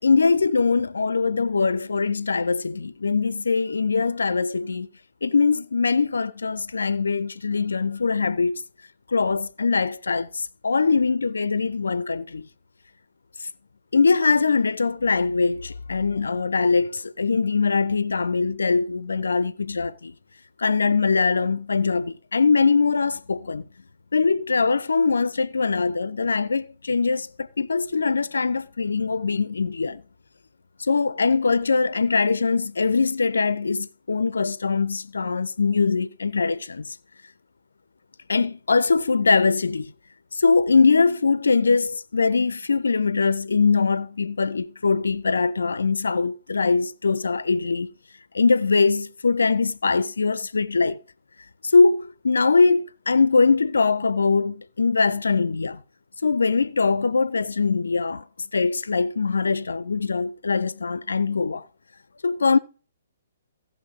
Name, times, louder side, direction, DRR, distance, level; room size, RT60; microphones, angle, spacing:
voice 1, 0.0-4.9 5.2-8.6 9.1-12.5 13.9-20.1 20.6-23.6 24.1-30.0 30.8-37.0 38.3-39.9 40.3-47.9 48.3-51.0 51.6-55.8 56.2-58.2 58.5-61.6 62.2-62.6, left 4 dB, 70° left, 0.4 m, -22 dB
14.5 x 5.8 x 5.0 m
figure-of-eight pair, 125°, 0 cm